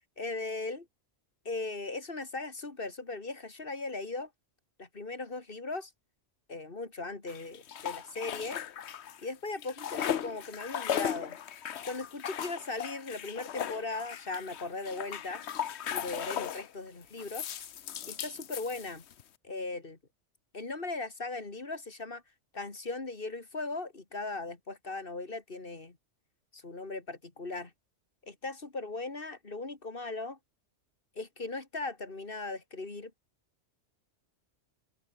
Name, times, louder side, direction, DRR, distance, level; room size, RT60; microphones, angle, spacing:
voice 1, 0.2-0.9 1.4-4.3 4.8-5.9 6.5-8.6 9.2-11.4 11.8-15.4 15.9-17.5 18.1-19.0 19.4-20.0 20.5-22.2 22.5-26.0 26.5-27.7 28.2-30.4 31.2-33.1, left 3 dB, 50° left, 2.8 m, -38 dB
sound 1, 7.3-9.2 9.5-16.7 17.2-19.2, left 9 dB, 65° left, 1.1 m, -37 dB
open air
omnidirectional pair, 1.2 m